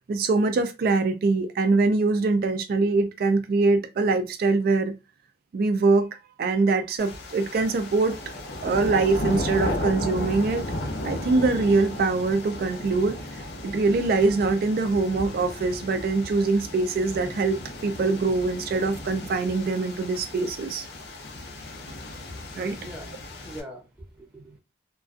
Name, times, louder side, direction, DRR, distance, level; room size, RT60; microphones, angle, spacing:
voice 1, 0.1-4.9 5.5-8.2 8.6-10.6 11.0-20.9 22.5-22.8, right 3 dB, 55° right, 0.3 m, -23 dB
sound 1, 7.0-23.6, left 1 dB, 65° left, 0.6 m, -35 dB
voice 2, 22.3-24.6, equal, 5° right, 0.7 m, -44 dB
2.4 x 2.2 x 2.4 m
head